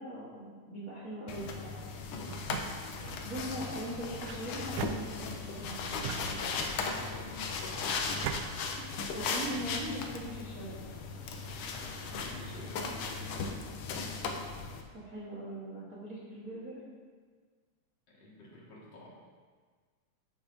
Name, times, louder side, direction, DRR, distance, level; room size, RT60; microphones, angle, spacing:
voice 1, 0.0-1.8 3.2-6.0 8.5-10.9 14.9-16.8, right 1 dB, 40° right, -7 dB, 1.3 m, -41 dB
sound 1, 1.3-14.8, left 4 dB, 80° left, 1.3 m, -37 dB
sound 2, 2.3-3.2 4.2-5.5 6.0-6.9 7.6-8.4, right 9 dB, 80° right, 1.5 m, -40 dB
voice 2, 6.3-7.6 11.4-13.5 18.1-19.1, left 1 dB, 55° left, -6 dB, 2.9 m, -49 dB
14.0 x 7.0 x 2.7 m, 1.5 s
omnidirectional pair, 3.4 m